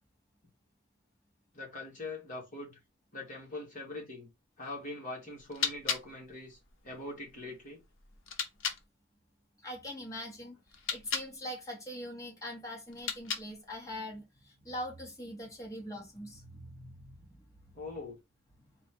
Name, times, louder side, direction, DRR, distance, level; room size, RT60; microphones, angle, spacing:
voice 1, 1.5-2.8 3.1-4.3 4.6-7.8 17.7-18.2, left 2 dB, 35° left, 1.8 m, -42 dB
sound 1, 5.3-8.8 10.7-11.3 12.9-13.7, left 6 dB, 55° left, 0.8 m, -38 dB
voice 2, 9.6-17.4, equal, 15° left, 1.3 m, -43 dB
4.2 x 2.4 x 4.5 m
head